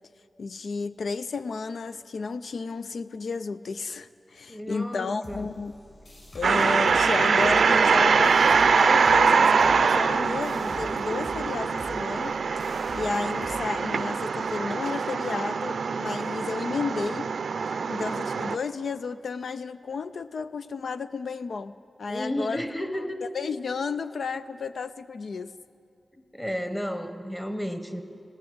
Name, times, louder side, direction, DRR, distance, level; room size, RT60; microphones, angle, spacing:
voice 1, 0.4-5.8 6.3-12.7 12.9-17.3 17.9-22.6 23.3-25.5, left 4 dB, 75° left, 12 dB, 0.4 m, -32 dB
voice 2, 4.5-5.5 22.1-23.2 26.3-28.0, equal, 10° left, 8 dB, 1.1 m, -32 dB
sound 1, 5.2-14.5, left 2 dB, 45° left, 6.1 m, -46 dB
sound 2, 6.4-18.6, right 5 dB, 80° right, 0.5 m, -23 dB
20.5 x 16.5 x 7.9 m, 2.6 s
wide cardioid pair, 140°, 0 cm